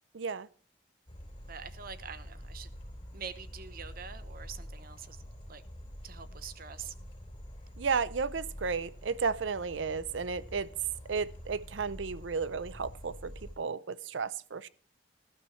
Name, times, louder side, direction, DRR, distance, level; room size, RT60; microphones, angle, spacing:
voice 1, 0.1-0.5 7.8-10.7 11.1-14.7, right 5 dB, 85° right, 0.6 m, -33 dB
sound 1, 1.1-13.6, equal, 30° left, 3.5 m, -47 dB
voice 2, 1.5-2.7 3.1-5.2 5.5-5.6 6.0-6.9, right 6 dB, 55° right, 0.9 m, -45 dB
18.0 x 12.0 x 3.2 m
head